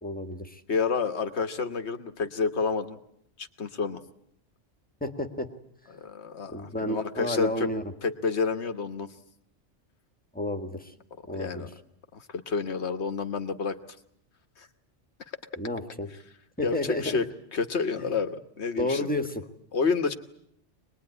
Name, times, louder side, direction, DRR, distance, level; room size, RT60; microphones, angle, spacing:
voice 1, 0.0-0.6 5.0-5.5 6.5-7.9 10.3-10.9 11.3-11.7 15.6-16.1 16.6-17.2 18.0-18.1 18.8-19.4, left 1 dB, 10° left, 7 dB, 1.6 m, -31 dB
voice 2, 0.7-3.0 3.4-4.0 5.9-7.7 8.0-9.1 11.3-11.7 12.1-13.8 14.6-14.7 16.6-19.1 19.7-20.1, left 5 dB, 70° left, 8 dB, 1.6 m, -29 dB
24.0 x 20.5 x 9.8 m, 0.72 s
omnidirectional pair, 1.2 m